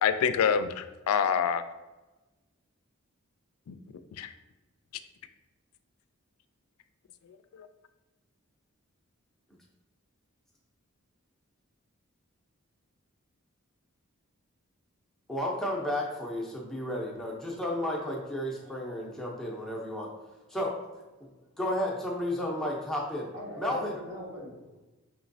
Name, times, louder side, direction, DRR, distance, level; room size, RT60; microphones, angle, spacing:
voice 1, 0.0-1.6 3.7-3.8 4.2-4.3 7.5-7.7, left 7 dB, 80° left, 11 dB, 0.3 m, -26 dB
voice 2, 15.3-20.1 20.5-20.7 21.6-23.3 23.6-23.9, left 1 dB, ahead, -3 dB, 0.6 m, -32 dB
voice 3, 21.2-21.6 22.4-22.6 23.3-24.8, left 1 dB, 60° right, -3 dB, 1.2 m, -43 dB
5.9 x 3.0 x 2.6 m, 1.1 s
head